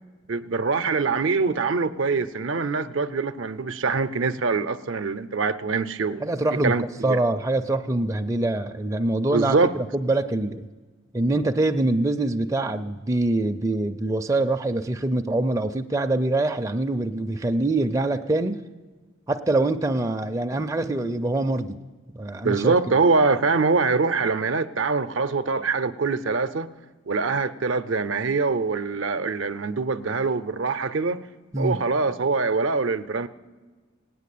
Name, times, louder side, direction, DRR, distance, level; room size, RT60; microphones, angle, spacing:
voice 1, 0.3-6.2 6.5-7.2 9.3-9.7 22.4-26.7 27.1-31.2 31.6-33.3, right 4 dB, 65° right, 0.6 m, -24 dB
voice 2, 6.2-6.7 7.0-10.7 11.1-18.6 19.3-21.8 22.1-22.7 31.5-31.8, right 2 dB, 15° right, 0.4 m, -24 dB
17.5 x 9.3 x 8.4 m
head